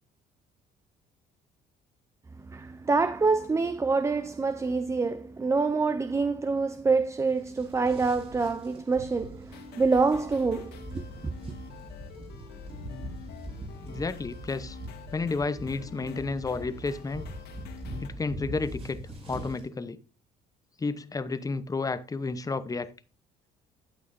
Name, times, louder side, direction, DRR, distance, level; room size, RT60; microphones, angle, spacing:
voice 1, 2.5-11.3, right 4 dB, 15° right, 0.5 m, -26 dB
sound 1, 7.3-19.7, right 1 dB, 35° right, 6.1 m, -43 dB
sound 2, 9.5-18.1, left 5 dB, 75° left, 1.9 m, -46 dB
voice 2, 13.8-14.8 15.1-17.2 18.0-19.0 19.3-20.0 20.8-22.9, left 3 dB, 20° left, 0.8 m, -31 dB
12.0 x 9.1 x 2.6 m
cardioid pair, 110°, 17 cm